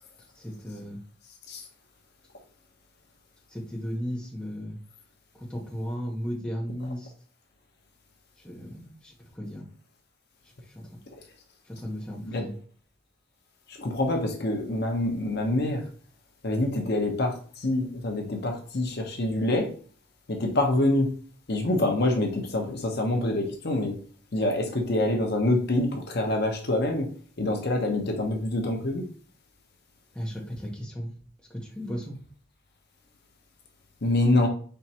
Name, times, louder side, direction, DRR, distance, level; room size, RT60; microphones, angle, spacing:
voice 1, 0.4-1.0 3.5-4.8 5.3-7.1 8.4-9.6 11.7-12.5 30.1-31.1 31.5-32.2, equal, 5° left, 0.9 m, -35 dB
voice 2, 12.1-12.5 13.7-15.9 16.4-19.7 20.3-21.2 21.5-24.0 24.3-27.1 27.4-29.0 34.0-34.5, left 1 dB, 50° left, 0.8 m, -26 dB
4.5 x 3.2 x 2.8 m
head